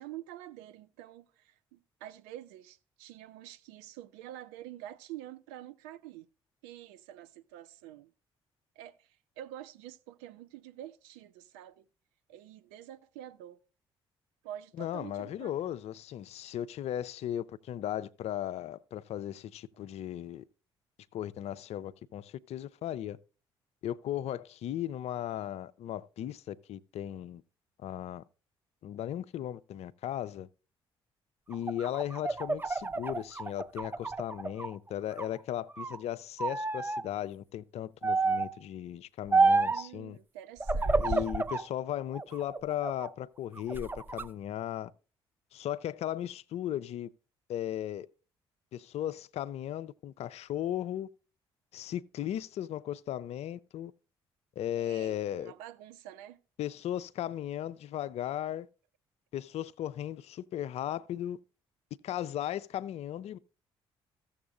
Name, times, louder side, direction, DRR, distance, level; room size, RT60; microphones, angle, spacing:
voice 1, 0.0-6.3 6.6-8.1 8.8-11.9 12.3-13.6 14.4-15.8 39.4-41.3 54.7-56.4, right 12 dB, 75° right, 0.5 m, -47 dB
voice 2, 14.8-20.4 21.1-23.2 23.8-27.4 27.8-28.2 28.8-30.5 31.5-40.2 41.0-44.9 45.5-47.1 47.5-48.1 48.7-51.1 51.7-53.9 54.6-55.5 56.6-58.7 59.3-61.4 62.0-63.4, left 11 dB, 55° left, 0.4 m, -36 dB
sound 1, 31.5-34.7 35.1-36.0 36.4-37.0 38.0-38.6 39.3-39.9 40.6-41.7 42.1-43.1 43.6-44.3, right 3 dB, 15° right, 0.4 m, -29 dB
14.5 x 7.2 x 2.4 m
hypercardioid pair, 45°, 13 cm